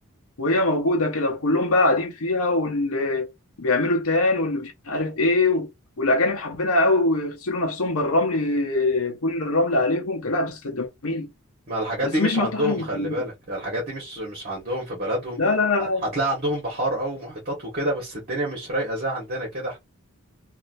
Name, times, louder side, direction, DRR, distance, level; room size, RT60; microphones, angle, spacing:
voice 1, 0.4-3.3 3.6-5.7 6.0-11.3 12.0-13.1 15.4-16.1, left 2 dB, 70° left, 0.8 m, -23 dB
voice 2, 11.7-15.4 15.8-19.8, right 1 dB, 45° right, 1.5 m, -28 dB
3.1 x 2.6 x 2.6 m
head